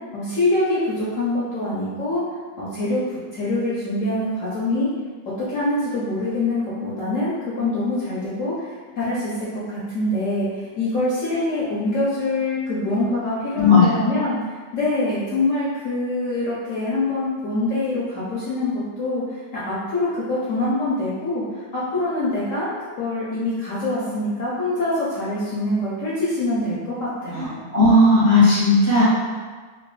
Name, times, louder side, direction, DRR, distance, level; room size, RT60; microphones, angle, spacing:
voice 1, 0.1-2.2 2.6-4.9 5.4-27.6, left 2 dB, 60° left, -8 dB, 0.8 m, -25 dB
voice 2, 27.7-29.0, left 2 dB, 35° right, -11 dB, 0.6 m, -15 dB
3.0 x 2.7 x 3.1 m, 1.4 s
omnidirectional pair, 1.9 m